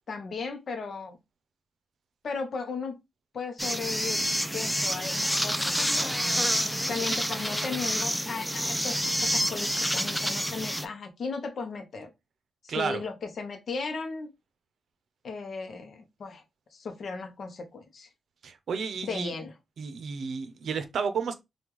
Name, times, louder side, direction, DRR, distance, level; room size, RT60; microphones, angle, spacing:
voice 1, 0.1-1.2 2.2-3.0 3.3-4.2 4.5-6.2 6.8-12.1 12.6-14.3 15.2-16.4 16.7-18.1 19.0-19.5, left 4 dB, 60° left, 0.7 m, -36 dB
sound 1, 3.6-10.8, equal, ahead, 0.4 m, -28 dB
voice 2, 12.7-13.0 18.4-19.3 19.8-21.3, right 5 dB, 70° right, 0.6 m, -32 dB
3.5 x 2.3 x 3.0 m
cardioid pair, 95°, 0 cm